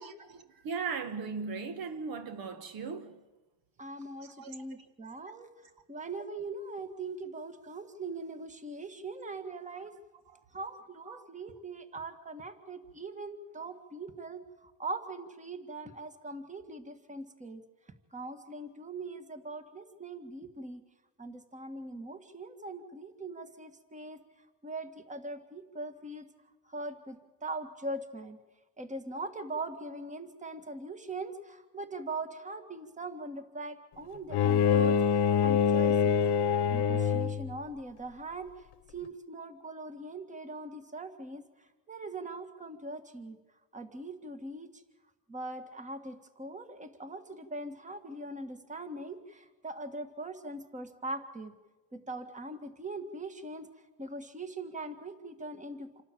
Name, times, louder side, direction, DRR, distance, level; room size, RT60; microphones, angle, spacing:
voice 1, 0.0-3.2 4.2-4.9 10.3-10.4 11.0-11.2, right 5 dB, 60° right, 1.5 m, -39 dB
voice 2, 3.8-5.5 5.9-9.9 10.5-17.6 18.1-20.8 21.2-24.2 24.6-26.3 26.7-28.4 28.8-36.2 36.7-38.6 38.9-41.4 41.9-43.4 43.7-44.7 45.3-51.5 51.9-53.7 54.0-56.0, right 2 dB, 20° right, 1.8 m, -41 dB
Bowed string instrument, 34.3-37.5, left 7 dB, 75° left, 1.1 m, -25 dB
27.5 x 12.5 x 9.0 m
cardioid pair, 120°, 41 cm